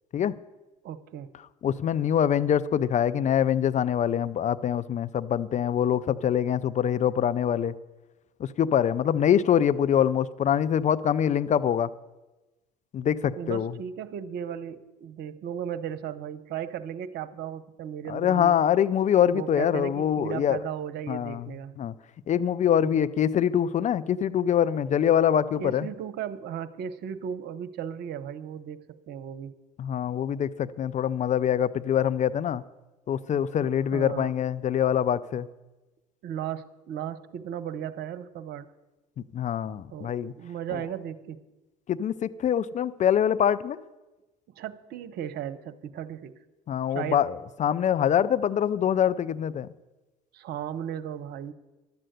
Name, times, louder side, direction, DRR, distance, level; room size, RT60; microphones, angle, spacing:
voice 1, 0.8-1.3 13.4-18.6 19.3-21.7 22.9-23.1 25.6-29.5 33.6-34.3 36.2-38.7 39.9-41.4 44.6-46.3 46.9-47.3 50.3-51.5, right 9 dB, 55° right, 12 dB, 0.8 m, -36 dB
voice 2, 1.6-7.7 8.4-11.9 12.9-13.7 18.1-20.6 21.1-21.5 21.8-21.9 22.3-25.9 29.8-32.6 33.1-35.5 39.3-40.3 41.9-43.8 46.7-49.7, left 9 dB, 35° left, 14 dB, 0.5 m, -24 dB
12.0 x 7.6 x 7.9 m, 1.1 s
hypercardioid pair, 65°, 21 cm